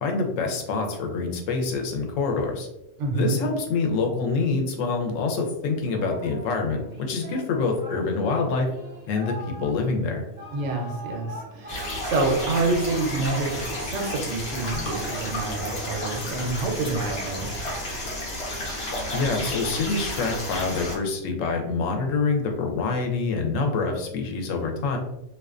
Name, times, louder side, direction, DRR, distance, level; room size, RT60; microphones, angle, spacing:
voice 1, 0.0-2.7 3.1-8.7 9.1-10.2 19.1-25.0, left 4 dB, 90° left, 3 dB, 0.9 m, -26 dB
voice 2, 3.0-3.4 10.5-17.6, right 3 dB, 75° right, 2 dB, 0.9 m, -27 dB
Singing, 5.7-16.7, right 1 dB, 35° right, 1.0 m, -42 dB
sound 1, 11.7-21.0, left 1 dB, 55° left, 0.9 m, -32 dB
2.4 x 2.2 x 2.3 m, 0.86 s
omnidirectional pair, 1.3 m